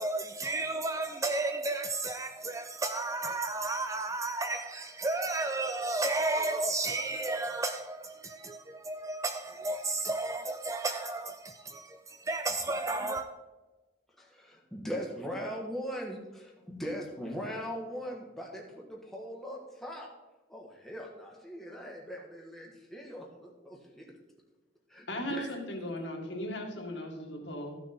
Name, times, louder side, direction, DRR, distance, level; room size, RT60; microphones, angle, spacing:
voice 1, 0.0-13.3, right 2 dB, 15° right, 0.4 m, -33 dB
voice 2, 14.2-20.1 20.5-24.1 24.9-25.6, equal, ahead, 1.5 m, -40 dB
voice 3, 25.1-27.8, equal, 70° left, 2.0 m, -37 dB
14.0 x 6.2 x 4.3 m
head